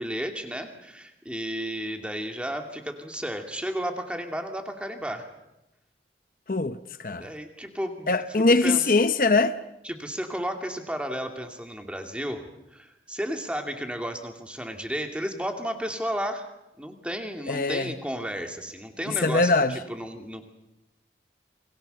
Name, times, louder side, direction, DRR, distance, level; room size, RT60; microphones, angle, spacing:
voice 1, 0.0-5.3 7.2-8.9 9.8-16.5 16.8-19.5 19.9-20.5, equal, 5° right, 2.5 m, -33 dB
voice 2, 6.5-7.3 8.1-9.6 17.5-17.9 19.1-19.8, left 3 dB, 50° left, 0.8 m, -22 dB
29.0 x 23.5 x 6.9 m
head